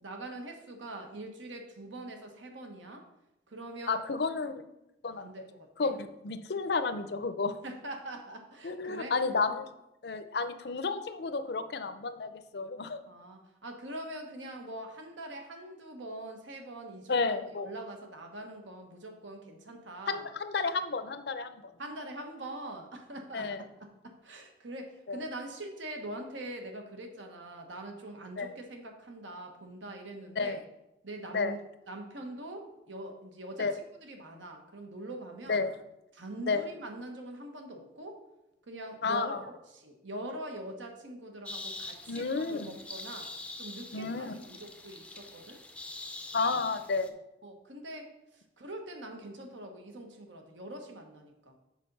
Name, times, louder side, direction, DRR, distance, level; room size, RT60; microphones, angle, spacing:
voice 1, 0.0-3.1 3.5-4.0 5.2-5.9 7.6-9.1 13.1-20.3 21.8-30.6 31.0-31.6 31.9-35.6 36.1-38.2 38.7-39.3 39.7-43.3 43.6-45.6 47.4-51.6, right 1 dB, 80° right, 4 dB, 1.3 m, -43 dB
voice 2, 3.9-4.6 5.0-5.3 5.8-7.5 8.6-9.7 10.0-13.0 17.1-17.7 20.1-21.7 23.3-23.6 25.1-25.2 28.4-28.5 30.4-30.6 31.3-31.5 33.6-33.7 35.5-35.7 36.5-36.6 39.0-39.4 42.1-42.7 43.9-44.3 46.3-47.1, left 4 dB, 55° left, 10 dB, 0.5 m, -31 dB
sound 1, 41.5-47.1, left 2 dB, 5° left, 0.5 m, -44 dB
6.5 x 5.1 x 5.4 m, 0.89 s
head